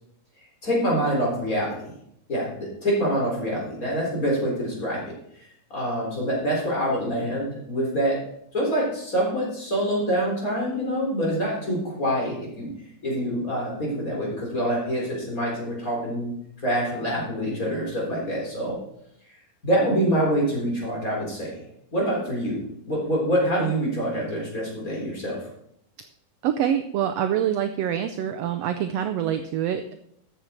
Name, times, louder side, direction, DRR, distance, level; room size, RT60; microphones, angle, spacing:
voice 1, 0.6-1.8 2.3-5.0 5.7-8.2 8.5-12.7 13.0-16.3 16.6-18.8 19.6-21.7 21.9-22.6 22.9-25.4, equal, 25° left, -3 dB, 4.3 m, -25 dB
voice 2, 26.4-29.9, right 9 dB, 80° right, 7 dB, 1.5 m, -25 dB
13.5 x 8.3 x 4.4 m, 0.72 s
omnidirectional pair, 3.5 m